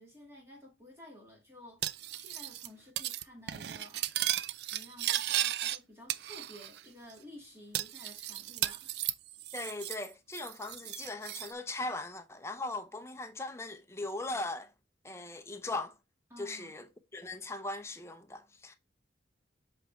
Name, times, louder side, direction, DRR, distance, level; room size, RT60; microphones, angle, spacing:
voice 1, 0.0-4.1 4.7-9.0 16.3-16.8, left 1 dB, 15° right, 1.8 m, -53 dB
Cutlery silverware, 1.8-2.7 3.0-3.2 3.5-5.8 6.1-6.8 7.1-7.2 7.7-10.1 10.3-11.5, right 13 dB, 60° right, 0.4 m, -35 dB
voice 2, 9.5-14.7 15.0-15.9 16.4-16.9 17.1-18.7, left 2 dB, 15° left, 0.6 m, -39 dB
8.0 x 3.5 x 4.3 m
head